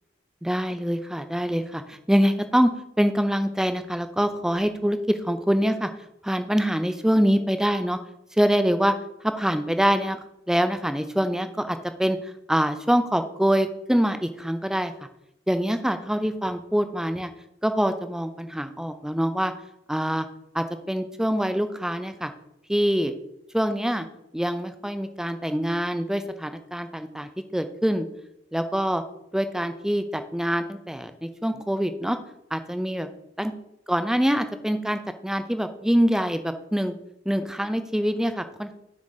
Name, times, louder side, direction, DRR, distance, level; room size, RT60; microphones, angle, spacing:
voice 1, 0.4-2.7 3.0-5.9 6.2-8.0 8.3-8.9 9.2-10.2 10.5-14.9 15.5-17.3 17.6-19.5 19.9-20.3 20.5-22.3 22.7-23.1 23.5-24.1 24.3-28.1 28.5-29.0 29.3-32.2 32.5-33.1 33.4-33.5 33.9-37.0 37.3-38.7, equal, 5° right, 9 dB, 0.4 m, -24 dB
7.5 x 6.2 x 4.0 m, 0.83 s
head